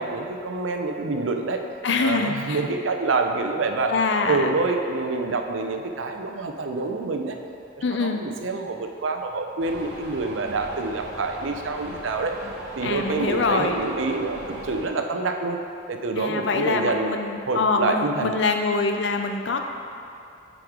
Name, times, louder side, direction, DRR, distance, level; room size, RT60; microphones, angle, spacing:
voice 1, 0.0-1.6 2.0-4.0 4.3-7.4 8.0-12.4 12.8-15.6 15.9-17.1 17.5-18.3, right 3 dB, 90° right, 4 dB, 0.6 m, -27 dB
voice 2, 1.8-2.6 3.9-4.5 7.8-8.2 12.8-13.8 16.2-19.6, left 4 dB, 70° left, 4 dB, 0.6 m, -24 dB
sound 1, 9.6-14.9, right 1 dB, 60° right, 0.9 m, -38 dB
7.8 x 5.0 x 3.7 m, 2.5 s
head